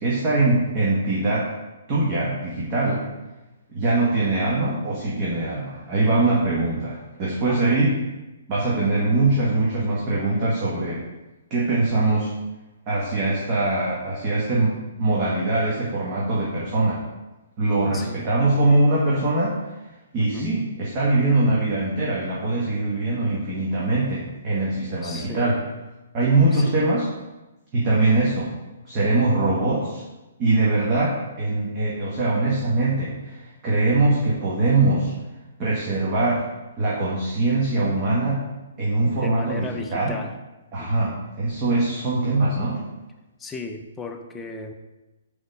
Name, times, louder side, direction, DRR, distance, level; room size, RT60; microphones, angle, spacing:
voice 1, 0.0-1.5 1.9-3.0 3.7-7.9 8.5-11.0 11.5-12.3 12.9-14.7 15.0-17.0 17.6-19.5 20.1-25.6 26.1-27.1 27.7-28.5 28.8-30.0 30.4-35.1 35.6-36.5 36.8-38.5 38.8-40.2 40.7-42.8, right 2 dB, 25° right, -6 dB, 1.1 m, -22 dB
voice 2, 7.5-7.9 17.9-18.3 20.2-20.6 25.0-25.5 26.5-26.8 39.1-40.3 40.8-41.2 43.4-44.7, left 3 dB, 10° left, 4 dB, 0.4 m, -35 dB
4.7 x 4.2 x 5.4 m, 1.1 s
hypercardioid pair, 165°, 0 cm